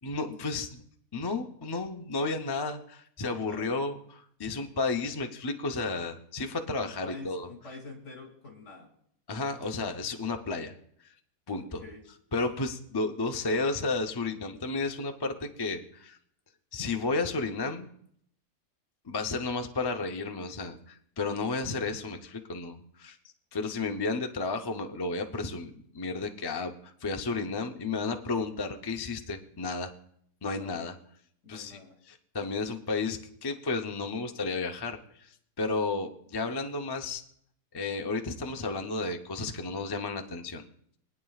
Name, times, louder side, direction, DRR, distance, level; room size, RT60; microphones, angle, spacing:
voice 1, 0.0-0.8 1.1-7.5 9.3-10.7 11.5-11.8 12.3-16.2 16.7-17.9 19.1-23.2 23.5-29.9 30.4-30.9 31.5-31.8 32.1-37.2 37.7-40.6, left 3 dB, 35° left, 4 dB, 0.4 m, -32 dB
voice 2, 6.8-8.9 11.5-12.0 30.5-30.8 31.4-31.9, left 3 dB, 50° left, 1 dB, 2.8 m, -47 dB
23.0 x 9.3 x 2.4 m, 0.66 s
omnidirectional pair, 1.6 m